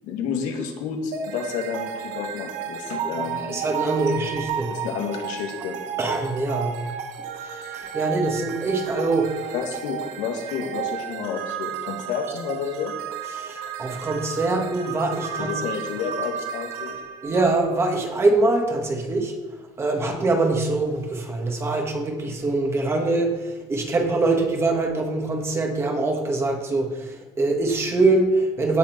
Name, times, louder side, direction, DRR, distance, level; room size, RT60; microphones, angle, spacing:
voice 1, 0.0-3.6 4.7-5.8 9.5-13.0 15.4-17.0, left 6 dB, 85° left, 2 dB, 2.1 m, -30 dB
sound 1, 1.1-18.3, right 8 dB, 85° right, 1.4 m, -33 dB
voice 2, 3.5-4.7 6.0-6.8 7.4-9.5 13.4-15.6 17.2-19.3 19.8-28.8, right 2 dB, 20° right, 2 dB, 1.6 m, -23 dB
17.0 x 6.6 x 4.6 m, 1.3 s
cardioid pair, 170°, 13 cm